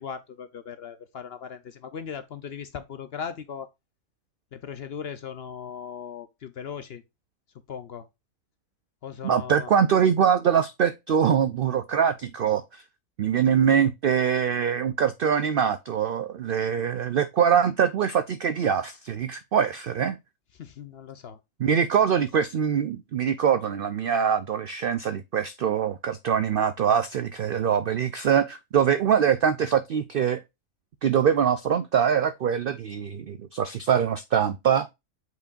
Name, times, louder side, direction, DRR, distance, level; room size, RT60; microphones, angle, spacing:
voice 1, 0.0-3.7 4.5-7.0 7.7-8.1 9.0-9.7 20.5-21.4, left 7 dB, 55° left, 0.7 m, -38 dB
voice 2, 9.2-12.6 13.2-20.2 21.6-30.4 31.0-34.9, right 8 dB, 70° right, 0.5 m, -23 dB
8.3 x 4.7 x 2.4 m
omnidirectional pair, 1.5 m